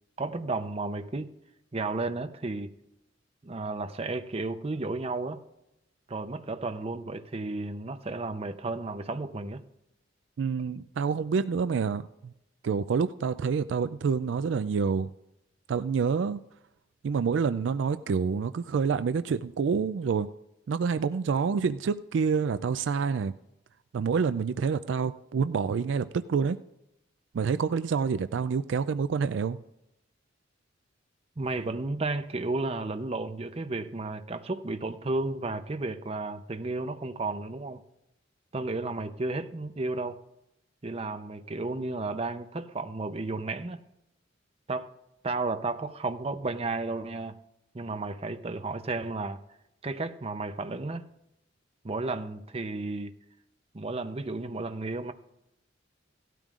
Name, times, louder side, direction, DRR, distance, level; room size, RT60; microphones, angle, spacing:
voice 1, 0.2-1.3 1.7-2.7 3.4-5.4 6.1-9.6 31.4-37.8 38.5-40.2 40.8-43.8 44.7-44.9 45.2-47.4 47.7-49.4 49.8-51.1 51.8-53.1 53.7-55.1, right 3 dB, 30° right, 0.6 m, -33 dB
voice 2, 10.4-12.3 12.6-15.1 15.7-16.4 17.0-20.3 20.7-23.3 23.9-26.6 27.3-29.6, right 5 dB, 70° right, 0.3 m, -27 dB
17.0 x 12.5 x 2.5 m
head